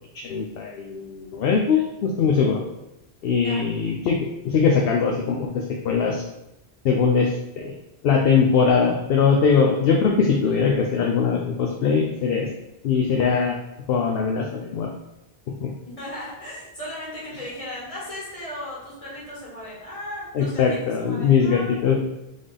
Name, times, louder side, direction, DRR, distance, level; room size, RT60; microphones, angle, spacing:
voice 1, 0.2-2.6 3.2-6.2 6.8-7.7 8.0-12.5 12.8-13.6 13.9-14.9 15.6-15.7 20.3-22.0, left 5 dB, 70° left, 0 dB, 0.7 m, -21 dB
voice 2, 15.9-21.7, left 1 dB, 35° left, -7 dB, 1.5 m, -36 dB
3.9 x 3.6 x 3.4 m, 0.91 s
omnidirectional pair, 1.1 m